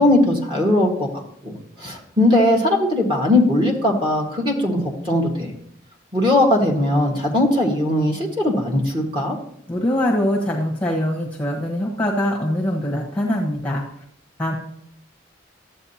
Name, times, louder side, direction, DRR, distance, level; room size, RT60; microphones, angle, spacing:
voice 1, 0.0-5.5 6.1-9.4, left 1 dB, 25° right, -1 dB, 1.7 m, -19 dB
voice 2, 9.7-13.8 14.4-14.5, left 1 dB, 5° left, -2 dB, 1.1 m, -23 dB
13.0 x 7.8 x 2.9 m, 0.69 s
head